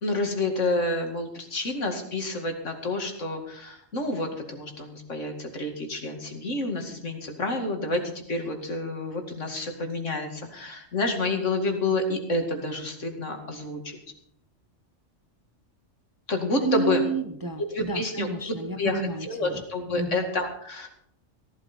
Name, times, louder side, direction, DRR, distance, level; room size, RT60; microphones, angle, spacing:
voice 1, 0.0-14.0 16.3-17.0 17.6-18.3 18.8-20.9, left 2 dB, 70° left, 3 dB, 2.5 m, -29 dB
voice 2, 16.6-19.6 20.0-20.3, right 3 dB, 20° right, 7 dB, 0.8 m, -31 dB
17.0 x 12.0 x 4.4 m, 0.70 s
omnidirectional pair, 1.3 m